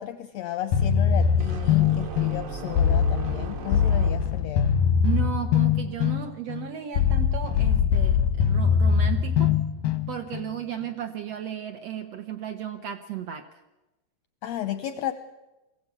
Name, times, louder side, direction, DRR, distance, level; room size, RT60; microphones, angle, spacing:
voice 1, 0.0-4.7 14.4-15.1, left 12 dB, 75° left, 9 dB, 1.6 m, -33 dB
sound 1, 0.7-10.5, left 7 dB, 90° left, 2.7 m, -22 dB
sound 2, 1.4-4.6, right 3 dB, 50° right, 1.8 m, -37 dB
voice 2, 5.0-9.5 10.1-13.5, right 10 dB, 65° right, 6 dB, 1.6 m, -34 dB
22.5 x 16.0 x 8.3 m, 1.0 s
omnidirectional pair, 3.9 m